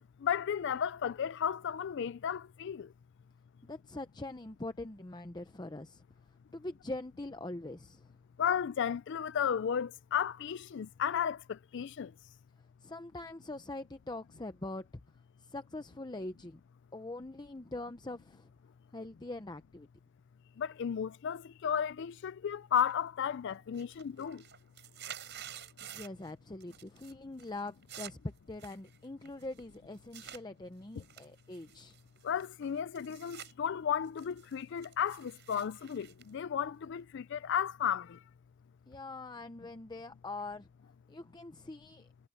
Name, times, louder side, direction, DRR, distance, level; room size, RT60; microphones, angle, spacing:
voice 1, 0.2-2.9 8.4-12.1 20.6-24.4 32.2-38.2, left 8 dB, 60° left, 0.4 m, -34 dB
voice 2, 3.6-6.0 6.5-8.1 12.8-14.9 15.5-16.6 16.9-18.5 18.9-19.9 25.8-31.9 38.9-40.7 41.1-42.1, left 2 dB, 20° left, 0.8 m, -43 dB
sound 1, 22.9-23.3 23.6-26.3 26.6-27.1 27.4-30.4 31.0-33.5 33.9-37.0, right 10 dB, 55° right, 5.9 m, -50 dB
head